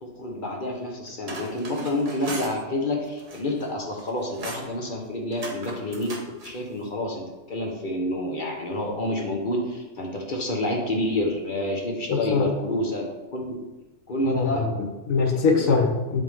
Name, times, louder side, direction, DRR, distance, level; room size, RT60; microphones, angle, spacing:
voice 1, 0.0-6.1 6.4-13.6 14.1-14.7 15.5-15.6, left 1 dB, 40° left, 0 dB, 1.0 m, -28 dB
sound 1, 1.1-2.6 3.1-3.7 4.0-4.7 5.3-6.6, right 2 dB, 35° right, 0.8 m, -38 dB
voice 2, 12.1-12.5 14.2-16.2, left 4 dB, 80° left, 3 dB, 1.3 m, -23 dB
7.5 x 3.5 x 3.5 m, 1.1 s
omnidirectional pair, 1.4 m